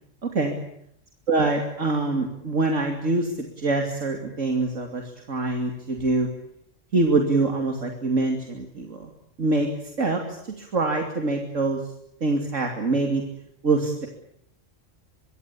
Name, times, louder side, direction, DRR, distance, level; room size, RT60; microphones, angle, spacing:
voice 1, 1.3-6.3 6.9-9.1 9.4-9.7 10.0-11.8 12.2-13.2 13.6-14.1, right 3 dB, 75° right, 3 dB, 3.1 m, -24 dB
24.5 x 24.0 x 8.5 m, 0.72 s
omnidirectional pair, 1.3 m